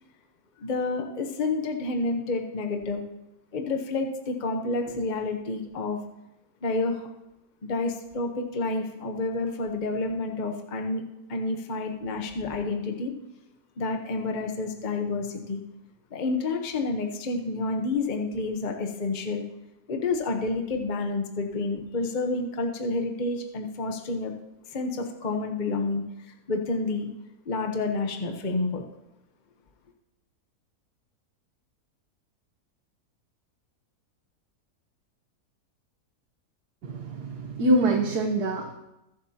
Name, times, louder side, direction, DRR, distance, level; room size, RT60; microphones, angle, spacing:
voice 1, 0.6-3.0 3.5-6.0 6.6-7.1 7.6-11.0 11.3-13.1 13.8-15.6 16.1-19.4 19.9-24.3 24.7-26.0 26.5-27.1 27.5-28.8, left 3 dB, 35° left, 4 dB, 1.0 m, -29 dB
voice 2, 36.8-38.7, right 1 dB, 85° right, 1 dB, 1.6 m, -25 dB
22.5 x 7.7 x 2.9 m, 0.91 s
omnidirectional pair, 1.7 m